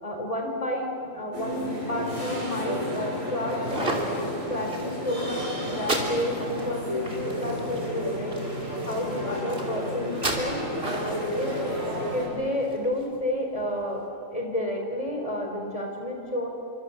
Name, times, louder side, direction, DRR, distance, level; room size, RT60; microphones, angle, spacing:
voice 1, 0.0-4.0 4.5-8.4 8.9-11.6 12.1-14.0 14.3-16.5, left 1 dB, 25° left, 1 dB, 4.3 m, -31 dB
sound 1, 1.3-12.3, left 1 dB, 90° right, 7.8 m, -31 dB
sound 2, 3.5-13.0, right 2 dB, 50° right, 3.4 m, -35 dB
29.0 x 25.0 x 7.3 m, 2.6 s
omnidirectional pair, 1.3 m